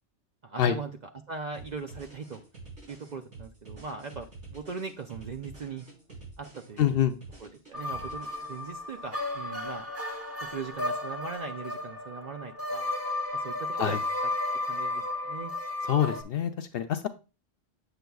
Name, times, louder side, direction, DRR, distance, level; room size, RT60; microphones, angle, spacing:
voice 1, 0.4-0.9 1.3-2.4 2.9-5.9 6.4-7.1 7.4-9.9 10.4-12.9 13.3-14.0 14.7-15.5, right 5 dB, 50° right, 5 dB, 0.5 m, -40 dB
sound 1, 1.5-8.9, right 3 dB, 70° right, 4.7 m, -48 dB
voice 2, 6.8-7.1 13.8-14.0 15.9-17.1, left 10 dB, 65° left, 9 dB, 0.7 m, -26 dB
sound 2, 7.7-16.2, left 2 dB, 15° right, 1.0 m, -33 dB
7.8 x 6.8 x 2.3 m, 0.31 s
omnidirectional pair, 1.2 m